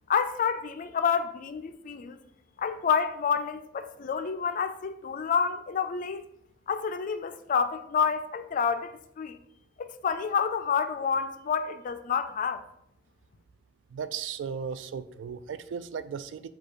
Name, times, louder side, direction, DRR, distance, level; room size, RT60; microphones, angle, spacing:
voice 1, 0.1-2.2 2.6-6.3 6.7-9.4 9.8-12.6, left 6 dB, 45° left, 0.3 m, -28 dB
voice 2, 13.9-16.5, right 7 dB, 70° right, 0.3 m, -36 dB
5.0 x 2.3 x 4.4 m
head